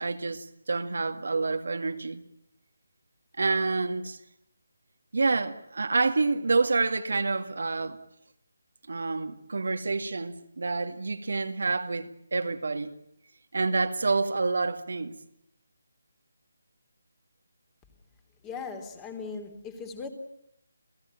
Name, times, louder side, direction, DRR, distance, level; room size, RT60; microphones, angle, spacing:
voice 1, 0.0-2.2 3.4-4.2 5.1-8.0 8.9-13.0 13.5-15.2, right 3 dB, 70° right, 2.1 m, -28 dB
voice 2, 18.4-20.1, left 5 dB, 15° left, 3.2 m, -38 dB
29.0 x 16.5 x 8.9 m
figure-of-eight pair, 160°, 0 cm